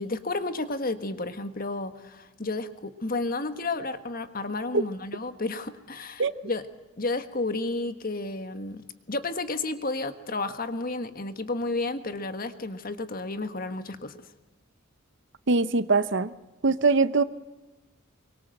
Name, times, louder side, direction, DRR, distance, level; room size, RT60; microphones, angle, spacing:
voice 1, 0.0-6.6 7.0-14.2, left 2 dB, 40° left, 10 dB, 1.5 m, -32 dB
voice 2, 15.5-16.3 16.6-17.2, right 3 dB, 55° right, 15 dB, 0.8 m, -22 dB
24.0 x 23.0 x 7.8 m, 1.1 s
head